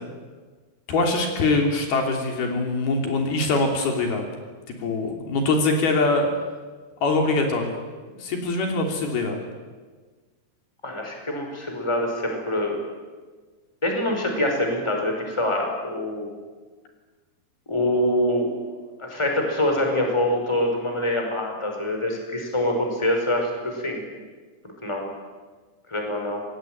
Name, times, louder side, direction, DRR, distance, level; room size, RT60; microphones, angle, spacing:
voice 1, 0.9-4.2 4.8-6.3 7.0-7.8 8.2-9.4, left 3 dB, 75° left, 3 dB, 5.0 m, -23 dB
voice 2, 10.8-12.8 13.8-16.4 17.7-18.6 19.0-24.0 24.6-25.0 25.9-26.4, left 1 dB, 5° left, 2 dB, 4.9 m, -25 dB
27.0 x 20.5 x 9.2 m, 1.4 s
omnidirectional pair, 4.5 m